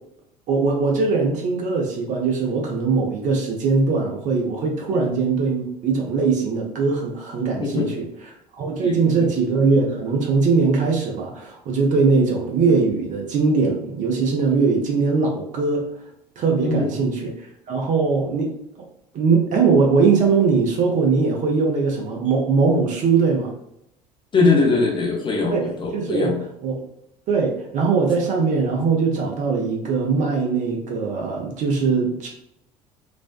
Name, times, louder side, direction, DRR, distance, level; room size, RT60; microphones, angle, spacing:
voice 1, 0.5-8.1 8.6-15.9 16.4-18.5 19.1-23.5 25.5-26.3 26.6-26.8 27.3-32.3, right 4 dB, 40° right, 0 dB, 0.6 m, -21 dB
voice 2, 7.6-7.9 8.8-9.3 16.6-16.9 24.3-26.4, left 3 dB, 25° left, 0 dB, 0.6 m, -21 dB
2.5 x 2.1 x 2.3 m, 0.75 s
figure-of-eight pair, 65°, 20 cm